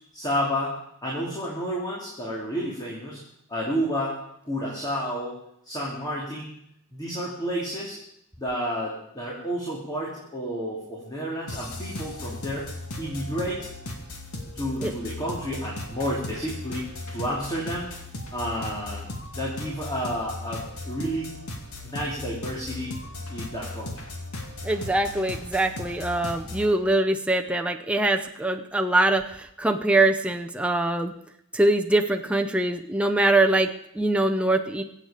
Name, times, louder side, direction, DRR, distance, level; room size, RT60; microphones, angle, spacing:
voice 1, 0.1-0.7 1.0-3.2 3.5-4.2 4.4-5.4 5.6-6.5 6.9-8.0 8.4-12.7 13.0-13.7 14.5-17.9 18.3-19.1 19.3-21.3 21.8-22.9 23.3-23.9, equal, 20° left, -5 dB, 2.8 m, -30 dB
sound 1, 11.5-26.7, left 2 dB, 80° left, 2.3 m, -37 dB
voice 2, 24.6-31.1 31.5-34.8, right 2 dB, 5° right, 3 dB, 0.6 m, -23 dB
23.0 x 8.3 x 5.0 m, 0.75 s
head